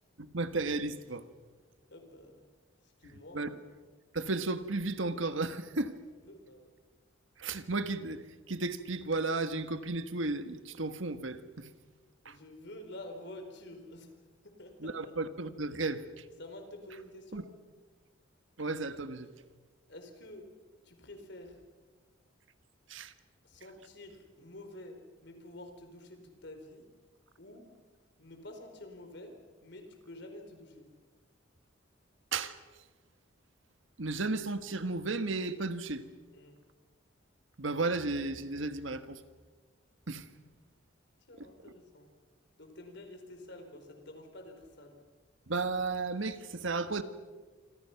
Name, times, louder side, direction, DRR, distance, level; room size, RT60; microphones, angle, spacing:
voice 1, 0.2-1.2 3.3-3.6 4.1-5.9 7.4-11.7 12.2-12.4 14.8-16.2 17.3-17.4 18.6-19.3 22.9-23.1 32.3-32.6 34.0-36.0 37.6-39.2 40.1-40.2 41.4-41.5 45.5-47.0, right 3 dB, 75° right, 10 dB, 1.5 m, -34 dB
voice 2, 1.9-2.4 3.0-3.5 6.2-6.7 12.2-14.1 14.4-15.1 16.4-17.5 19.9-20.5 20.8-21.6 23.4-25.0 25.2-26.8 27.4-27.7 28.2-29.3 29.6-30.9 36.3-36.6 41.3-42.1 42.6-45.0, left 1 dB, 60° left, 5 dB, 4.5 m, -49 dB
27.5 x 26.0 x 5.9 m, 1.3 s
head